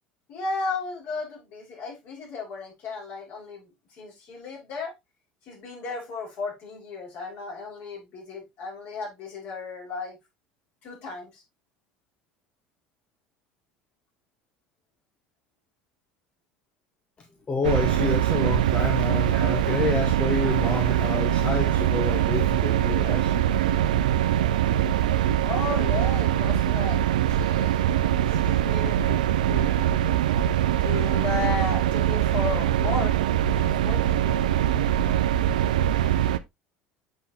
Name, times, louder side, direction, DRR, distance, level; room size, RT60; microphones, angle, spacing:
voice 1, 0.3-4.9 5.5-10.2 10.8-11.4 25.2-27.0 27.3-27.9 28.3-30.0 30.8-33.1 33.5-34.4, left 4 dB, 55° left, 5.7 m, -34 dB
voice 2, 17.5-23.4, left 3 dB, 30° left, 1.5 m, -29 dB
sound 1, 17.6-36.4, right 11 dB, 80° right, 0.5 m, -23 dB
8.2 x 5.8 x 3.0 m
hypercardioid pair, 70°, 4 cm